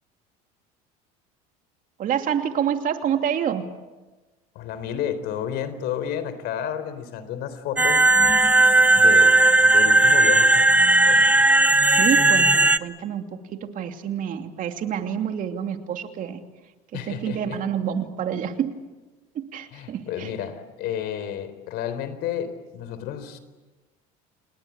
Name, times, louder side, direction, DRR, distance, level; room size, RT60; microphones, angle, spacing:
voice 1, 2.0-3.7 11.9-16.4 16.9-18.8 19.3-20.3, right 8 dB, 50° right, 6 dB, 2.7 m, -28 dB
voice 2, 4.5-8.1 8.9-11.3 16.9-17.6 19.7-23.4, left 9 dB, 65° left, 12 dB, 4.0 m, -31 dB
sound 1, 7.8-12.8, right 2 dB, 10° right, 0.9 m, -16 dB
28.5 x 20.5 x 8.7 m, 1.2 s
supercardioid pair, 105°, 18 cm